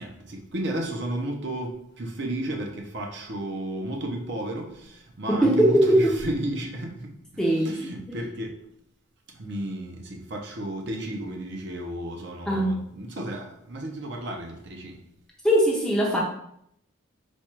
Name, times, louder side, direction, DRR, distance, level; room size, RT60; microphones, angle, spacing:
voice 1, 0.0-7.1 7.6-8.5 9.3-15.0, right 1 dB, 55° right, 1 dB, 0.7 m, -33 dB
voice 2, 5.3-6.1 7.4-7.9 12.5-12.8 15.4-16.2, right 1 dB, 5° left, -3 dB, 0.6 m, -20 dB
4.4 x 2.3 x 4.4 m, 0.72 s
head